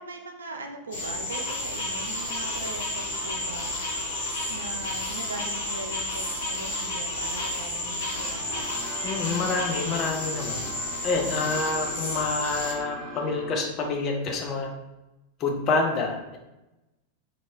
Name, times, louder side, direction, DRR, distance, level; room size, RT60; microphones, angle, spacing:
voice 1, 0.0-3.7 4.5-8.8, right 2 dB, 70° right, 4 dB, 0.3 m, -40 dB
sound 1, 0.9-12.7, left 1 dB, 60° left, 0.9 m, -31 dB
sound 2, 8.1-13.5, right 1 dB, 10° right, 0.7 m, -40 dB
voice 2, 9.0-10.7 11.0-14.7 15.4-16.4, left 3 dB, 35° left, 2 dB, 0.5 m, -27 dB
2.6 x 2.3 x 2.9 m, 0.99 s
figure-of-eight pair, 90°, 0 cm